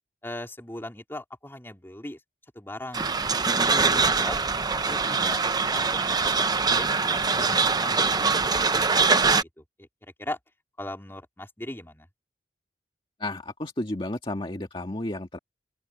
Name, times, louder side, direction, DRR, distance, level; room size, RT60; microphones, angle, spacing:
voice 1, 0.2-2.2 2.5-4.4 4.7-5.4 5.7-10.4 10.8-12.1, left 1 dB, 15° left, 3.6 m, -40 dB
sound 1, 2.9-9.4, right 4 dB, 25° right, 0.8 m, -23 dB
voice 2, 13.2-15.4, left 1 dB, 30° left, 2.0 m, -32 dB
open air
head